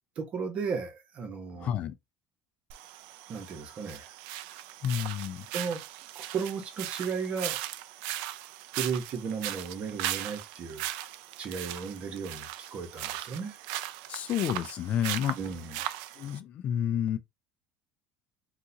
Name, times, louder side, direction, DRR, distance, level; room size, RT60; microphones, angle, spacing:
voice 1, 0.2-1.7 3.3-4.1 5.5-5.8 6.1-7.6 8.7-10.8 11.4-13.6 15.4-15.8, right 5 dB, 35° right, 1.1 m, -35 dB
voice 2, 1.6-1.9 4.8-5.5 14.1-15.4 16.2-17.2, left 10 dB, 40° left, 0.3 m, -30 dB
sound 1, 2.7-16.4, right 14 dB, 80° right, 0.4 m, -38 dB
3.8 x 2.4 x 2.8 m
cardioid pair, 150°, 3 cm